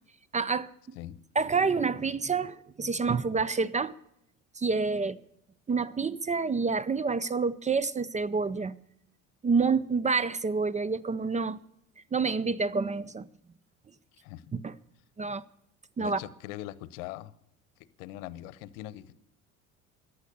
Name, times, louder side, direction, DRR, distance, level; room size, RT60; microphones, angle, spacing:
voice 1, 0.3-1.0 1.4-3.9 4.6-5.2 5.7-8.8 9.4-11.6 12.1-13.3 14.6-14.7 15.2-15.4 16.0-16.2, right 4 dB, 20° right, 0.5 m, -28 dB
voice 2, 16.0-17.3 17.8-19.1, left 14 dB, 70° left, 0.9 m, -41 dB
14.5 x 10.0 x 6.7 m
hypercardioid pair, 70°, 40 cm